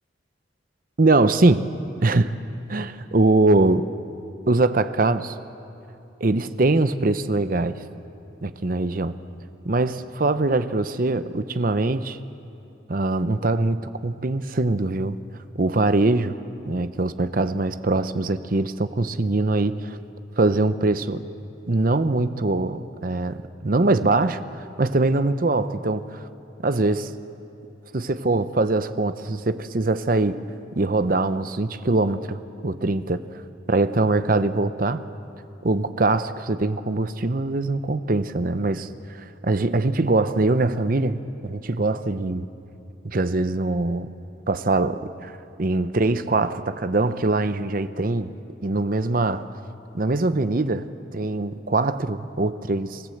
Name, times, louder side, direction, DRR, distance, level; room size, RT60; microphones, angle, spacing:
voice 1, 1.0-1.6 2.0-2.3 2.7-3.9 4.5-5.3 6.2-7.7 8.4-9.2 9.7-12.2 12.9-15.2 15.5-16.3 16.6-20.0 20.4-21.2 21.7-24.4 24.8-26.2 26.6-27.1 27.9-30.4 30.8-33.2 33.7-35.0 35.6-38.9 39.4-42.5 43.0-44.1 44.5-45.3 45.6-48.3 48.6-49.5 49.9-53.0, right 2 dB, 45° right, 12 dB, 0.7 m, -22 dB
26.0 x 15.5 x 7.9 m, 3.0 s
head